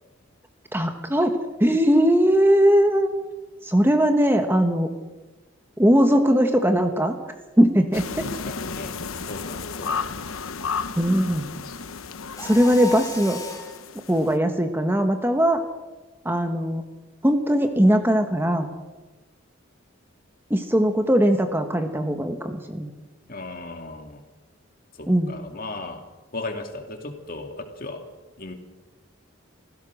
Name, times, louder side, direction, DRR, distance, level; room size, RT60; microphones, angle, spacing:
voice 1, 0.7-3.1 3.6-4.9 5.8-7.1 7.6-8.3 11.0-11.5 12.4-13.4 14.1-15.6 16.2-16.8 17.2-18.7 20.5-22.9 25.1-25.3, equal, 10° right, 6 dB, 1.3 m, -20 dB
sound 1, 7.9-14.3, left 5 dB, 90° left, 1.1 m, -33 dB
voice 2, 8.2-9.0 9.3-10.1 23.3-24.2 24.9-26.0 26.3-28.0 28.4-28.5, left 2 dB, 45° left, 4 dB, 2.4 m, -36 dB
Mechanisms, 12.3-13.8, left 1 dB, 15° left, 2.7 m, -35 dB
25.5 x 16.0 x 6.4 m, 1.2 s
head